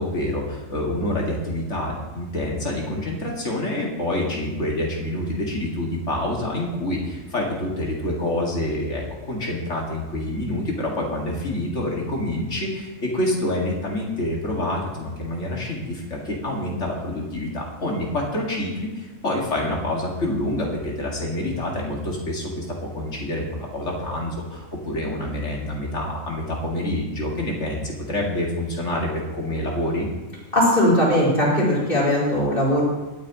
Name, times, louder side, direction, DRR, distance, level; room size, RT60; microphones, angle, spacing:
voice 1, 0.0-30.1, left 1 dB, 65° left, -2 dB, 2.5 m, -27 dB
voice 2, 30.5-32.8, left 1 dB, 45° left, -7 dB, 4.8 m, -19 dB
22.5 x 9.2 x 3.1 m, 1.1 s
omnidirectional pair, 1.3 m